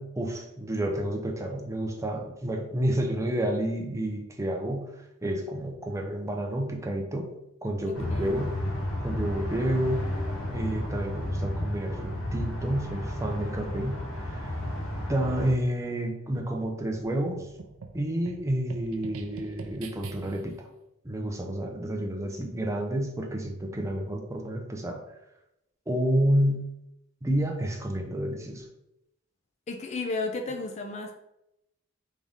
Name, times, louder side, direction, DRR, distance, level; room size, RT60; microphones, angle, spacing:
voice 1, 0.0-7.3 7.6-8.5 9.0-10.1 10.5-14.0 14.3-14.4 15.1-17.5 17.9-20.7 21.0-25.0 25.9-26.7 27.2-28.7, right 1 dB, 15° right, 2 dB, 0.6 m, -29 dB
sound 1, 7.9-15.5, left 1 dB, 75° left, 1.1 m, -32 dB
voice 2, 7.9-8.3 29.7-31.1, left 3 dB, 35° left, 4 dB, 0.4 m, -33 dB
sound 2, 16.9-20.6, right 4 dB, 85° right, 0.5 m, -44 dB
3.9 x 3.6 x 3.6 m, 0.85 s
head